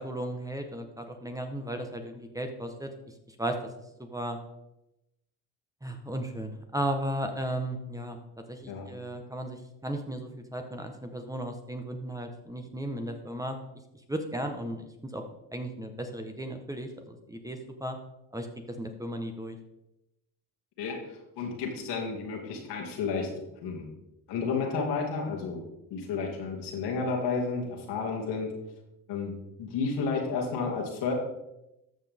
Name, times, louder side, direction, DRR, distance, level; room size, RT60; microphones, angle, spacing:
voice 1, 0.0-2.9 3.3-3.6 4.0-4.4 5.8-8.2 8.5-13.6 14.1-15.2 15.5-18.0 18.3-18.5 18.8-19.6, right 1 dB, 10° right, 5 dB, 1.4 m, -35 dB
voice 2, 21.4-23.3 23.6-23.9 24.3-25.6 25.9-28.5 29.1-29.3 29.6-31.1, left 4 dB, 75° left, 0 dB, 2.6 m, -31 dB
14.0 x 5.7 x 3.7 m, 0.88 s
supercardioid pair, 70°, 41 cm